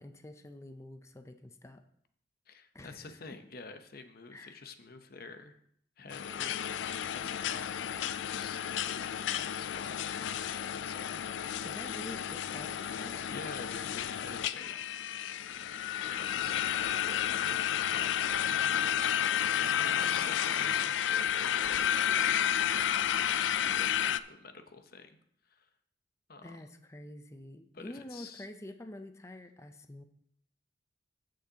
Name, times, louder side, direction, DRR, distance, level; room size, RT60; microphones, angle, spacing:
voice 1, 0.0-1.8 2.7-3.0 4.3-4.6 11.6-13.2 19.6-20.9 26.4-30.0, left 1 dB, 15° left, 7 dB, 0.5 m, -48 dB
voice 2, 2.5-5.6 6.0-6.8 7.1-10.5 10.7-11.2 13.3-15.0 15.9-19.0 19.4-21.9 22.2-25.2 25.4-25.7 26.3-26.6 27.7-28.5, left 4 dB, 55° left, 8 dB, 0.8 m, -49 dB
sound 1, 6.1-24.2, left 9 dB, 80° left, 0.4 m, -31 dB
15.0 x 6.4 x 2.8 m, 0.67 s
head